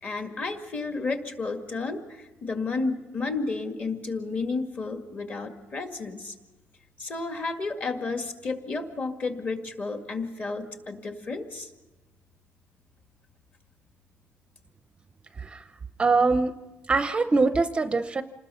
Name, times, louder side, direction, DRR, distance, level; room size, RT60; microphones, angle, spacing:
voice 1, 0.0-6.3 7.0-11.7, left 3 dB, 35° left, 5 dB, 2.0 m, -32 dB
voice 2, 16.0-16.5 16.9-18.2, right 3 dB, 20° right, 10 dB, 0.6 m, -23 dB
27.5 x 20.0 x 5.7 m, 1.1 s
cardioid pair, 175°, 5 cm